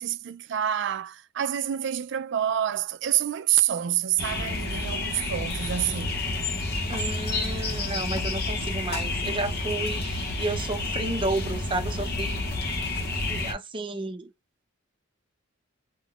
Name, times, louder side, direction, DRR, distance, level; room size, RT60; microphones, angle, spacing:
voice 1, 0.0-6.2, right 10 dB, 60° right, 0.4 m, -27 dB
sound 1, 4.2-13.5, left 2 dB, 50° left, 0.8 m, -30 dB
voice 2, 6.9-12.4 13.3-14.3, right 2 dB, 25° right, 0.6 m, -32 dB
3.4 x 2.2 x 2.4 m
head